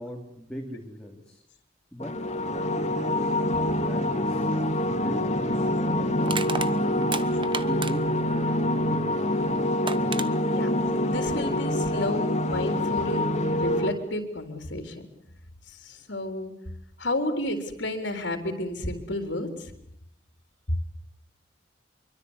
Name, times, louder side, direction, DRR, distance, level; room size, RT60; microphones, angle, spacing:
voice 1, 0.0-1.4 1.9-2.1 2.5-3.3 3.8-6.5 6.9-7.2 7.6-9.3, equal, 5° left, 0 dB, 3.3 m, -39 dB
sound 1, 2.0-13.9, left 1 dB, 40° left, 3.4 m, -26 dB
Crushing, 4.9-5.0 6.2-8.2 9.4-9.5 9.9-10.3, right 5 dB, 30° right, 1.2 m, -32 dB
voice 2, 11.0-15.0 15.7-16.5 17.0-19.7, left 1 dB, 75° left, 5 dB, 3.9 m, -31 dB
26.5 x 24.0 x 8.2 m, 0.74 s
head